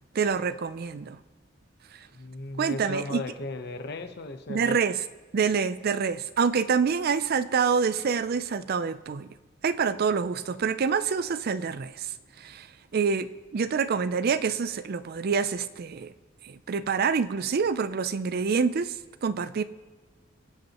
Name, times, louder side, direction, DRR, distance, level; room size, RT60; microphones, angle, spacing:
voice 1, 0.1-1.2 2.6-3.2 4.5-5.0 5.3-9.3 9.6-12.1 12.4-12.7 12.9-16.1 16.4-18.9 19.2-19.6, right 5 dB, 50° right, 14 dB, 0.4 m, -26 dB
voice 2, 2.1-4.8, left 2 dB, 55° left, 6 dB, 1.0 m, -36 dB
23.5 x 8.1 x 3.0 m, 1.3 s
head